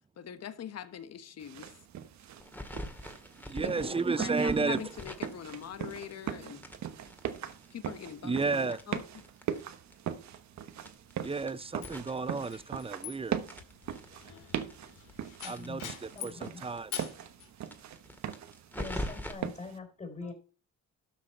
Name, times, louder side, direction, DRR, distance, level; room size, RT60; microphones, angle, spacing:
voice 1, 0.2-1.7 3.5-6.7 7.7-9.0 14.3-14.5 20.2-20.3, left 9 dB, 55° left, 1.3 m, -43 dB
sound 1, 1.4-19.8, right 9 dB, 65° right, 1.2 m, -40 dB
sound 2, 2.4-6.3 6.6-9.6 9.9-10.0 10.3-10.4 10.8-13.1 13.4-16.5 16.8-16.9 17.1-17.2 17.6-19.3, left 1 dB, 5° left, 2.0 m, -43 dB
voice 2, 3.4-4.8 8.2-8.8 11.2-13.4 15.4-17.0, right 4 dB, 20° right, 0.6 m, -32 dB
sound 3, 11.8-16.5 16.9-17.5, left 9 dB, 85° left, 2.9 m, -44 dB
voice 3, 15.4-15.8 16.2-16.6 18.8-20.3, left 4 dB, 25° left, 3.8 m, -43 dB
12.5 x 6.3 x 4.3 m
cardioid pair, 90°, 30 cm